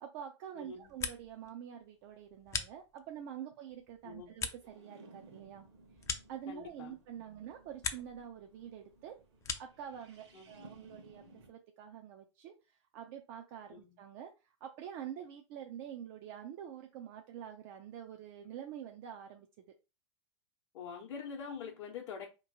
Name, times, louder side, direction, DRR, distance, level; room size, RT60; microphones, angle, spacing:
voice 1, 0.0-5.7 6.3-9.2 9.6-19.5, right 9 dB, 45° right, 0.5 m, -47 dB
voice 2, 0.6-0.9 4.0-4.3 6.5-7.4 10.3-10.5 13.7-14.0 20.7-22.3, left 6 dB, 50° left, 0.8 m, -45 dB
sound 1, 0.7-1.5 1.8-3.3 3.7-7.0 7.3-8.2 8.5-9.9, left 6 dB, 20° left, 0.5 m, -42 dB
sound 2, 4.6-11.5, right 2 dB, 60° right, 1.1 m, -59 dB
4.3 x 3.0 x 2.8 m
figure-of-eight pair, 90°, 16 cm